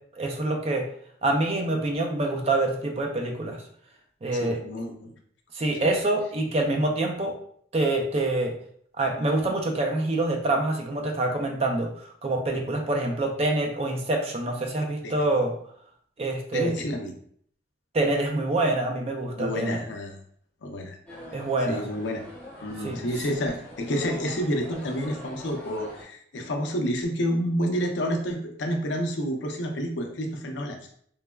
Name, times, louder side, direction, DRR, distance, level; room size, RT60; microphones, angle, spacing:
voice 1, 0.2-0.9 1.2-3.6 4.2-4.6 5.5-7.4 7.7-8.5 9.0-15.5 16.2-16.7 17.9-19.8 21.3-21.8 22.8-23.0, right 2 dB, 35° right, 2 dB, 0.4 m, -26 dB
voice 2, 4.3-5.1 15.0-15.3 16.5-17.1 19.4-20.2 20.6-21.0 21.7-22.2 22.6-30.9, equal, 75° left, 3 dB, 0.5 m, -29 dB
sound 1, 21.1-26.0, left 1 dB, 5° left, 0.8 m, -44 dB
3.1 x 2.1 x 2.2 m, 0.62 s
head